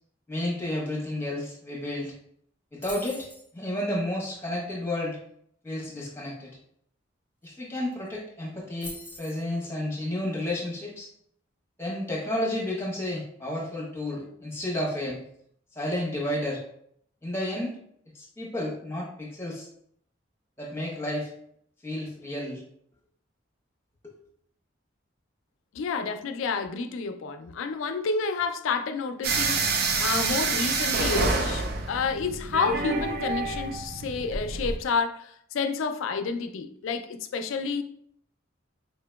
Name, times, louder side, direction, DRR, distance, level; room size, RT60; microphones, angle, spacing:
voice 1, 0.3-2.1 2.7-3.3 3.5-5.2 5.6-6.5 7.4-11.1 11.8-15.2 15.7-16.6 17.2-17.7 18.1-19.7 20.6-21.3 21.8-22.6 24.0-24.1, left 1 dB, 10° left, 1.0 m, -31 dB
sound 1, 2.8-3.5 7.4-7.5 7.8-8.1 8.8-9.4, left 1 dB, 5° right, 0.6 m, -42 dB
voice 2, 25.7-37.8, left 4 dB, 80° left, 0.4 m, -30 dB
sound 2, 29.2-34.8, right 4 dB, 50° right, 0.4 m, -27 dB
4.2 x 2.8 x 2.2 m
head